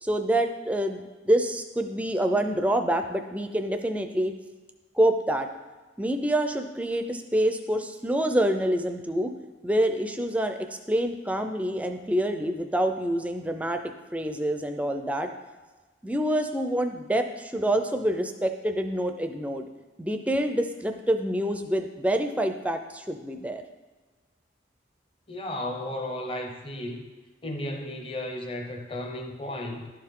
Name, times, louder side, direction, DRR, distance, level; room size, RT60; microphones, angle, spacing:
voice 1, 0.0-4.3 4.9-5.5 6.0-9.3 9.6-10.6 10.9-13.8 14.1-15.3 16.0-19.7 20.0-23.6, right 1 dB, 10° right, 6 dB, 0.4 m, -26 dB
voice 2, 25.3-27.1 27.4-29.9, left 1 dB, 30° left, 2 dB, 0.8 m, -34 dB
11.5 x 4.6 x 3.6 m, 1.3 s
head